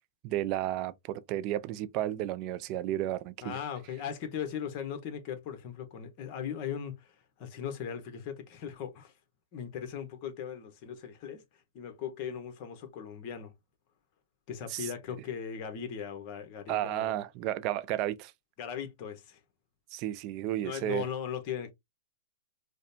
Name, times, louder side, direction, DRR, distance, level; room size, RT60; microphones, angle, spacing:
voice 1, 0.2-3.6 14.7-14.9 16.7-18.3 19.9-21.1, right 13 dB, 40° right, 0.4 m, -32 dB
voice 2, 3.4-9.1 9.5-11.4 11.7-13.5 14.5-17.2 18.6-19.4 20.6-21.7, left 8 dB, 40° left, 1.2 m, -38 dB
4.9 x 2.2 x 2.8 m
hypercardioid pair, 140°, 0 cm